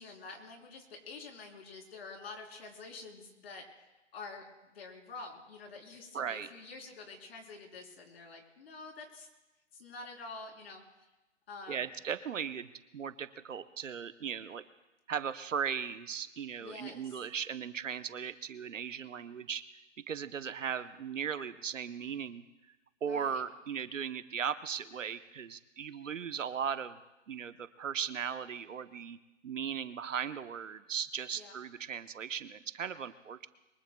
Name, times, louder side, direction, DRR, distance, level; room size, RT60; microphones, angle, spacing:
voice 1, 0.0-4.4 4.7-9.3 9.8-10.8 11.5-11.9 16.6-17.2 23.0-23.4 31.3-31.5, left 3 dB, 55° left, 1 dB, 3.9 m, -48 dB
voice 2, 6.1-6.5 11.7-14.6 15.1-19.7 20.1-22.4 23.0-27.0 27.3-29.2 29.4-33.5, right 7 dB, 90° right, 12 dB, 1.0 m, -37 dB
23.5 x 21.0 x 2.3 m, 1.0 s
hypercardioid pair, 155°, 37 cm